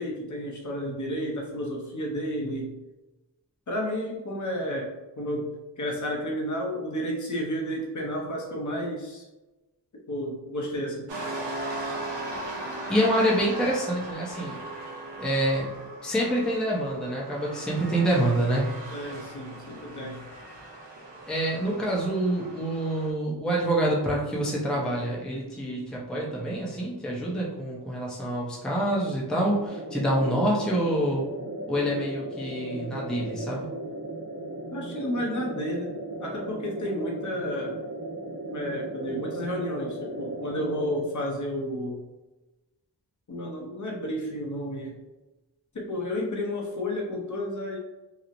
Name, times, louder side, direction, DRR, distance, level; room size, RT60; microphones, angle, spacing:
voice 1, 0.0-2.7 3.7-9.2 10.1-11.1 18.9-20.2 34.7-35.9 36.2-37.8 38.4-42.0 43.3-45.0 45.7-47.8, equal, 45° left, -1 dB, 0.6 m, -31 dB
sound 1, 11.1-23.1, right 2 dB, 75° right, 0.8 m, -38 dB
voice 2, 12.9-14.6 15.2-15.7 16.0-18.7 21.3-31.2 31.7-33.7, right 1 dB, ahead, -4 dB, 0.5 m, -26 dB
sound 2, 29.7-41.0, right 1 dB, 45° right, 1.0 m, -36 dB
2.9 x 2.0 x 2.5 m, 1.1 s
wide cardioid pair, 85°, 43 cm